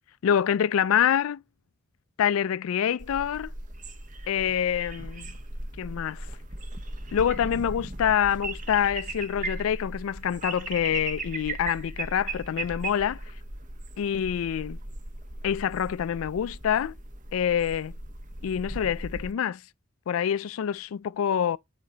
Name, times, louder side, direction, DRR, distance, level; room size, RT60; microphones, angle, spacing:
voice 1, 0.2-1.4 2.2-3.5 4.3-5.3 5.8-6.3 7.1-13.2 14.0-14.8 15.4-16.9 17.3-17.9 18.4-19.6 20.1-21.6, left 9 dB, 85° left, 0.3 m, -26 dB
sound 1, 3.0-19.3, right 2 dB, 40° right, 1.1 m, -38 dB
8.3 x 5.1 x 3.9 m
head